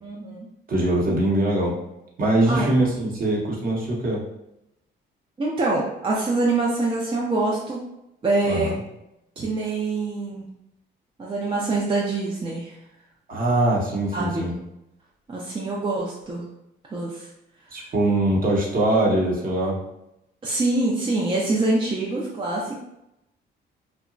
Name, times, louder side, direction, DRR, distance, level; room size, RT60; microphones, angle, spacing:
voice 1, 0.0-0.5 2.5-2.7 5.4-7.8 8.2-8.7 9.4-10.5 11.2-12.7 14.1-14.5 15.3-16.5 16.9-17.3 20.4-22.8, right 2 dB, 25° right, -4 dB, 0.5 m, -25 dB
voice 2, 0.7-1.7 2.2-4.2 8.5-8.7 13.3-14.5 17.7-19.8, right 1 dB, 45° right, -3 dB, 0.9 m, -22 dB
2.8 x 2.2 x 2.5 m, 0.86 s
cardioid pair, 90°, 20 cm